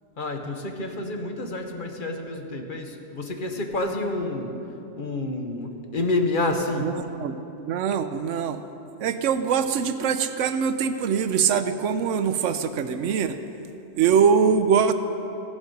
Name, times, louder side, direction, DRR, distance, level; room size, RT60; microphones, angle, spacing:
voice 1, 0.2-4.5 5.0-6.9, left 2 dB, 45° left, 3 dB, 1.0 m, -28 dB
voice 2, 7.6-8.6 9.0-13.4 14.0-14.9, right 7 dB, 85° right, 10 dB, 0.9 m, -22 dB
16.0 x 7.2 x 5.2 m, 2.9 s
omnidirectional pair, 1.3 m